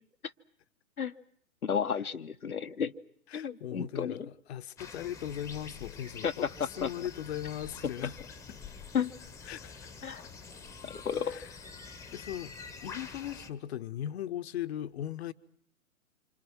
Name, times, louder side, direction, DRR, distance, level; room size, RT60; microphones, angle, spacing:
voice 1, 1.6-2.9 3.3-4.2 6.2-6.3 6.8-6.9 7.8-7.9 8.9-9.1 10.0-10.2 10.8-11.4, left 7 dB, 85° left, 0.9 m, -32 dB
voice 2, 3.3-8.2 8.5-8.6 9.5-9.9 11.2-11.5 12.1-15.3, left 11 dB, 45° left, 0.9 m, -38 dB
sound 1, 4.8-13.5, left 5 dB, 5° left, 1.1 m, -47 dB
27.0 x 26.0 x 6.0 m
figure-of-eight pair, 115°, 43 cm